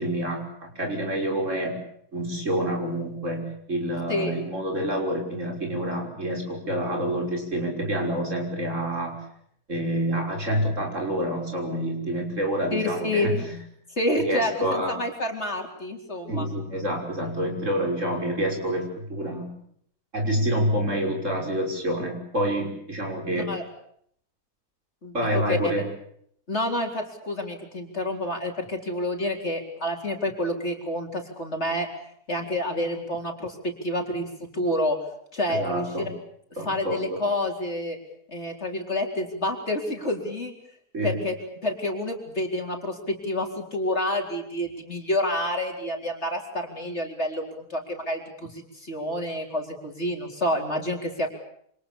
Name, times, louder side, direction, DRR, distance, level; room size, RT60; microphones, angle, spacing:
voice 1, 0.0-1.8 2.1-9.2 9.7-13.3 14.2-15.0 16.3-19.5 20.1-23.5 25.1-25.8 35.5-36.1 36.6-37.2 40.9-41.1, right 1 dB, 50° right, 2 dB, 6.4 m, -27 dB
voice 2, 12.7-13.6 14.0-16.5 23.3-23.6 25.0-25.6 26.5-31.9 32.3-35.0 35.3-35.9 36.7-38.0 38.3-40.5 41.0-41.4 41.6-51.3, left 1 dB, 45° left, 2 dB, 4.5 m, -28 dB
28.5 x 26.5 x 7.1 m, 0.69 s
omnidirectional pair, 1.6 m